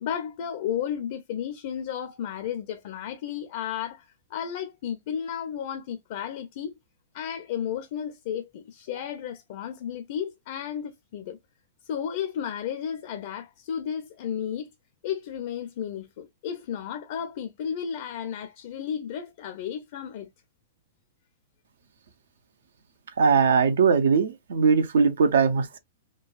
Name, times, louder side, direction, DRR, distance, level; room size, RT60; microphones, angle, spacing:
voice 1, 0.0-6.8 7.1-11.4 11.8-14.7 15.0-20.3, left 9 dB, 55° left, 0.5 m, -33 dB
voice 2, 23.2-25.8, right 5 dB, 70° right, 0.6 m, -20 dB
3.8 x 2.3 x 2.4 m
hypercardioid pair, 110°, 0 cm